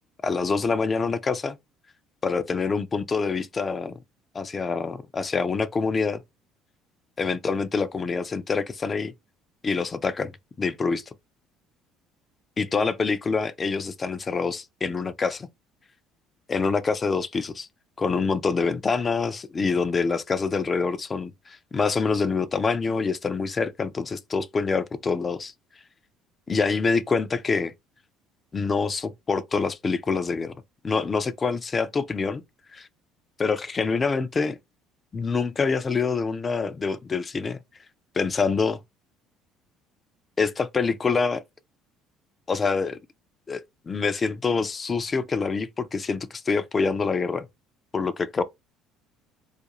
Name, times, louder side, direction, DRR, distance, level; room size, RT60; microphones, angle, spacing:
voice 1, 0.2-1.6 2.2-3.9 4.3-6.2 7.2-9.1 9.6-10.3 10.6-11.0 12.6-15.5 16.5-17.7 18.0-25.5 26.5-27.7 28.5-30.5 30.8-32.4 32.7-32.9 33.4-34.6 35.1-37.6 38.1-38.8 40.4-41.4 42.5-43.0 43.5-43.6 43.9-47.5 47.9-48.4, left 4 dB, 30° left, 0.4 m, -26 dB
2.4 x 2.2 x 2.9 m
hypercardioid pair, 60°, 0 cm